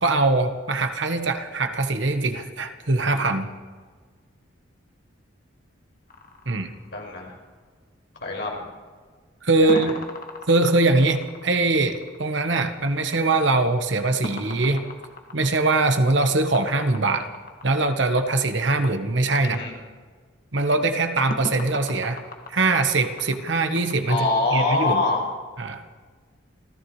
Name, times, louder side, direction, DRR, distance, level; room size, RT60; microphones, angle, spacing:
voice 1, 0.0-3.5 6.5-6.7 9.4-9.9 10.5-14.8 15.3-17.3 17.6-19.6 20.5-22.2 22.5-24.2 24.5-25.0 25.6-25.8, right 2 dB, 65° right, 7 dB, 1.2 m, -22 dB
sound 1, 6.1-7.5 9.7-18.3 21.3-23.9, left 1 dB, 45° left, 1.8 m, -39 dB
voice 2, 6.9-7.3 8.2-8.6 9.6-9.9 19.4-19.7 24.1-25.2, left 3 dB, 60° left, -1 dB, 5.3 m, -24 dB
28.5 x 15.0 x 3.3 m, 1.5 s
head